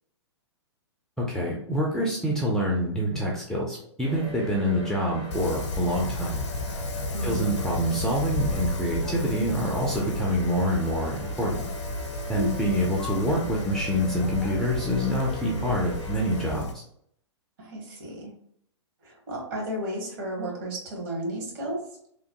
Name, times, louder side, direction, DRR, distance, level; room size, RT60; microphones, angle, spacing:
voice 1, 1.2-6.4 7.2-11.7 12.3-16.8, equal, 5° left, -3 dB, 0.4 m, -26 dB
sound 1, 4.0-16.5, equal, 80° right, 1.5 m, -39 dB
Wind, 5.3-16.7, left 2 dB, 65° left, 0.6 m, -33 dB
voice 2, 7.1-7.6 12.3-12.7 17.6-18.3 19.0-21.8, right 1 dB, 45° right, -1 dB, 1.3 m, -33 dB
2.9 x 2.1 x 2.8 m, 0.68 s
figure-of-eight pair, 115°, 15 cm